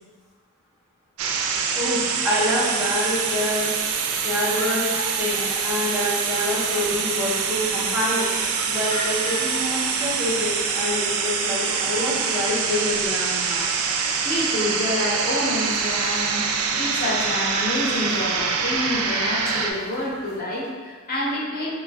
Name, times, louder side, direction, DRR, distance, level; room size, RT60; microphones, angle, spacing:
sound 1, 1.2-19.7, right 5 dB, 70° right, 0.3 m, -25 dB
voice 1, 1.7-3.7 4.2-8.3 8.7-13.9, left 1 dB, 10° right, -6 dB, 0.6 m, -27 dB
sound 2, 2.1-20.4, left 1 dB, 80° left, 0.8 m, -40 dB
voice 2, 14.2-21.8, left 1 dB, 40° left, -4 dB, 0.6 m, -27 dB
3.3 x 2.5 x 3.4 m, 1.5 s
head